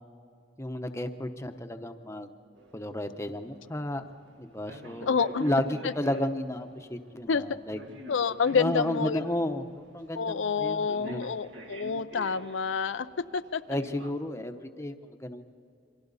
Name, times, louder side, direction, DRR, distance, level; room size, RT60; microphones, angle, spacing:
voice 1, 0.6-2.3 2.7-4.0 4.4-7.8 8.5-11.3 13.7-15.4, left 1 dB, 15° left, 6 dB, 0.9 m, -32 dB
sound 1, 2.6-14.1, equal, 65° right, 1.7 m, -49 dB
voice 2, 5.0-5.5 5.8-5.9 7.3-7.4 8.1-9.2 10.1-13.6, left 5 dB, 85° left, 11 dB, 0.5 m, -28 dB
29.0 x 24.0 x 4.1 m, 2.4 s
head